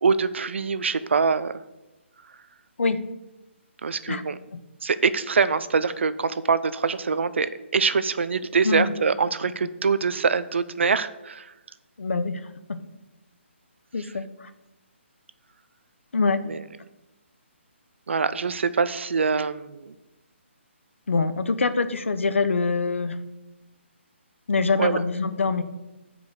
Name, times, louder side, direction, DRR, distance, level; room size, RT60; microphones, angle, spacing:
voice 1, 0.0-1.5 3.8-4.4 4.8-11.5 16.5-16.6 18.1-19.9 24.8-25.0, right 5 dB, 65° right, 14 dB, 0.5 m, -24 dB
voice 2, 12.0-12.4 12.7-12.8 13.9-14.5 16.1-16.4 21.1-23.2 24.5-25.6, left 4 dB, 70° left, 12 dB, 0.8 m, -24 dB
8.3 x 5.0 x 6.5 m, 1.0 s
figure-of-eight pair, 145°, 7 cm